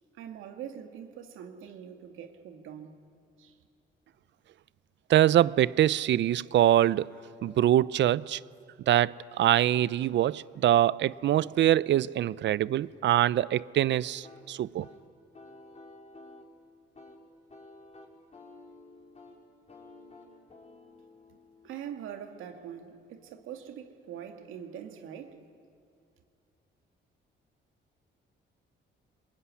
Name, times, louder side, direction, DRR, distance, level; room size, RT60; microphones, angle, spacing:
voice 1, 0.1-3.0 3.4-3.6 21.3-21.4 21.6-25.4, right 9 dB, 90° right, 2.2 m, -43 dB
voice 2, 5.1-7.1 7.4-8.4 8.9-14.9, right 12 dB, 65° right, 0.6 m, -24 dB
sound 1, 14.2-22.8, left 2 dB, 35° left, 5.6 m, -53 dB
25.5 x 21.5 x 9.9 m
cardioid pair, 90°, 20 cm